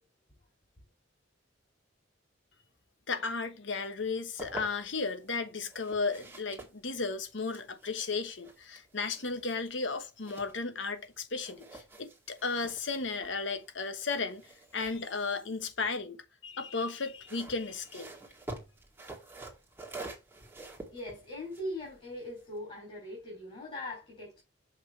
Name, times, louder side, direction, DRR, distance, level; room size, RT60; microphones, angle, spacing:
voice 1, 3.1-14.4 14.7-18.1, left 4 dB, 75° left, 1.1 m, -34 dB
sound 1, 4.0-5.1 5.7-11.1 11.4-16.0 17.0-22.6, right 2 dB, 10° right, 2.0 m, -48 dB
voice 2, 20.9-24.4, left 1 dB, 30° left, 3.4 m, -40 dB
6.6 x 5.4 x 3.4 m
head